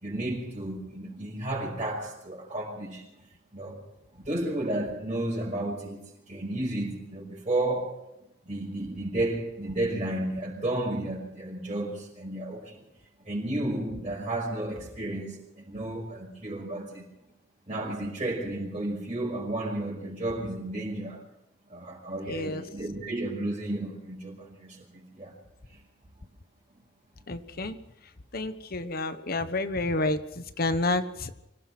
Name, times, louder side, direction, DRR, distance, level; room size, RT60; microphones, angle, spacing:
voice 1, 0.0-3.1 3.5-3.8 4.1-8.0 8.5-12.8 13.2-17.0 17.7-21.2 21.7-25.4 25.7-25.8, right 1 dB, 35° right, 5.7 m, -32 dB
voice 2, 22.3-22.6 27.3-27.8 28.3-31.3, left 2 dB, 55° left, 1.2 m, -29 dB
25.5 x 17.0 x 6.1 m
head